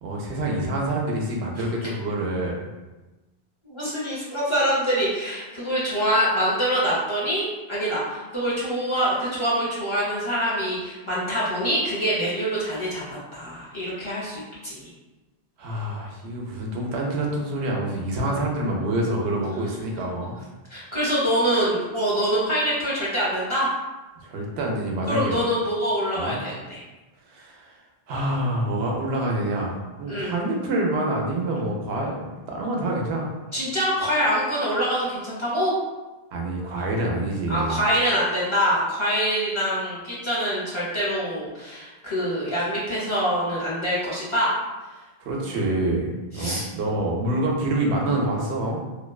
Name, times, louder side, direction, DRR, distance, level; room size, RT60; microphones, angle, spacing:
voice 1, 0.0-2.7 15.6-20.4 24.2-25.4 26.1-26.4 27.3-27.8 28.1-33.3 36.3-37.8 45.2-48.8, right 1 dB, 85° right, -1 dB, 0.8 m, -26 dB
voice 2, 3.6-14.9 20.7-23.7 25.1-26.8 30.1-30.3 33.5-35.7 37.5-44.5 46.3-46.6, equal, 35° left, -8 dB, 0.6 m, -25 dB
2.6 x 2.1 x 2.2 m, 1.1 s
omnidirectional pair, 1.1 m